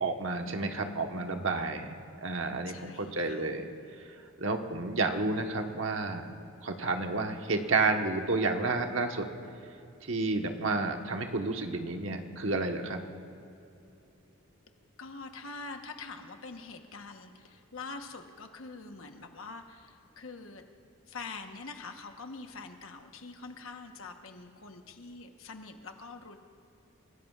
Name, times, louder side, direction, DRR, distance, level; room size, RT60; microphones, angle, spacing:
voice 1, 0.0-3.7 4.4-6.3 6.6-9.3 10.0-13.0, right 3 dB, 65° right, 4 dB, 1.2 m, -31 dB
voice 2, 2.7-3.5 15.0-20.6 21.0-26.4, left 4 dB, 70° left, 5 dB, 1.1 m, -45 dB
29.5 x 16.5 x 2.4 m, 2.8 s
head